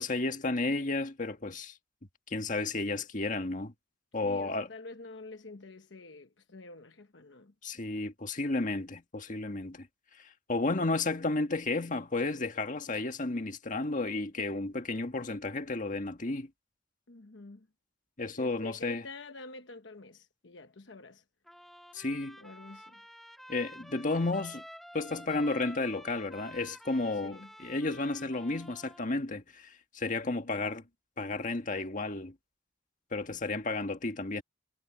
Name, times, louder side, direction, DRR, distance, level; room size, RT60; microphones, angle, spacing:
voice 1, 0.0-1.8 2.3-3.7 4.1-4.7 7.6-9.9 10.2-16.5 18.2-19.0 21.9-22.4 23.5-24.6 24.9-30.8 31.2-32.3 33.1-34.4, left 2 dB, 45° left, 1.7 m, -32 dB
voice 2, 4.2-7.5 17.1-17.7 18.4-21.2 22.4-23.0 27.2-27.5 30.2-30.7, left 2 dB, 70° left, 1.1 m, -47 dB
Trumpet, 21.5-29.1, equal, ahead, 1.8 m, -50 dB
head